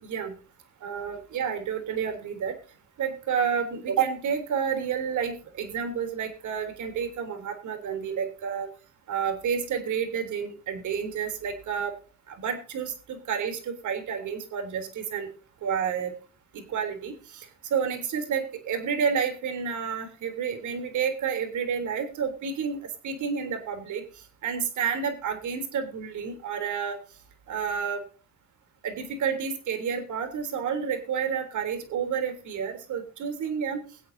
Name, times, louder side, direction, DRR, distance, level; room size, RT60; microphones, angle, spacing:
voice 1, 0.0-0.3 0.8-2.6 3.0-8.7 9.1-11.9 12.3-15.3 15.6-16.1 16.5-27.0 27.5-28.0 28.8-33.8, right 7 dB, 75° right, 6 dB, 3.5 m, -30 dB
23.0 x 8.5 x 2.8 m, 0.38 s
cardioid pair, 90°, 30 cm